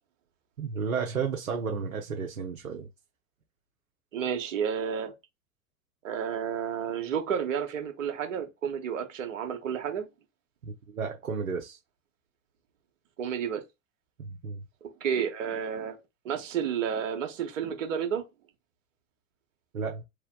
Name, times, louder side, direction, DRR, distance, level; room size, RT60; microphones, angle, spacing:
voice 1, 0.6-2.9 10.6-11.8 14.2-14.6 19.7-20.0, right 5 dB, 80° right, 0.8 m, -33 dB
voice 2, 4.1-5.1 6.0-10.1 13.2-13.6 15.0-16.0 16.2-18.2, right 8 dB, 65° right, 1.3 m, -31 dB
3.4 x 3.0 x 3.6 m
figure-of-eight pair, 85°, 41 cm